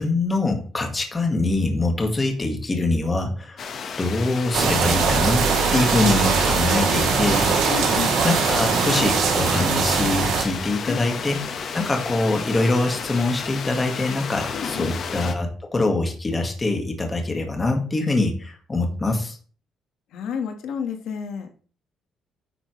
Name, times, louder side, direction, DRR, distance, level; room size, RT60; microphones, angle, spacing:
voice 1, 0.0-3.7 4.0-7.7 8.2-11.4 11.7-19.4, left 2 dB, 15° left, 3 dB, 1.6 m, -24 dB
sound 1, 3.6-15.3, left 6 dB, 45° left, 1.2 m, -32 dB
sound 2, 4.5-10.4, right 6 dB, 80° right, 2.6 m, -21 dB
voice 2, 7.7-8.2 10.8-11.0 14.5-14.9 20.1-21.5, left 7 dB, 65° left, 6 dB, 1.4 m, -30 dB
9.8 x 8.3 x 3.2 m, 0.41 s
cardioid pair, 170°, 0 cm